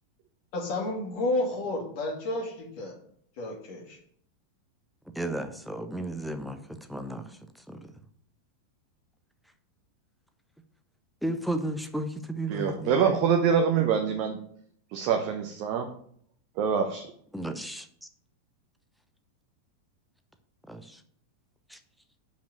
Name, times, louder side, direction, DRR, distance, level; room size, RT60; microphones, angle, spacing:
voice 1, 0.5-2.9 3.4-4.0, left 2 dB, 45° left, -1 dB, 2.2 m, -31 dB
voice 2, 5.1-6.6 6.9-7.3 7.7-7.8 11.2-13.0 17.3-17.9 20.7-21.0 21.7-21.8, right 1 dB, ahead, 7 dB, 0.7 m, -33 dB
voice 3, 12.5-14.4 14.9-15.9 16.6-17.1, right 7 dB, 45° right, 4 dB, 0.8 m, -25 dB
5.2 x 5.1 x 5.9 m, 0.63 s
figure-of-eight pair, 90°, 0 cm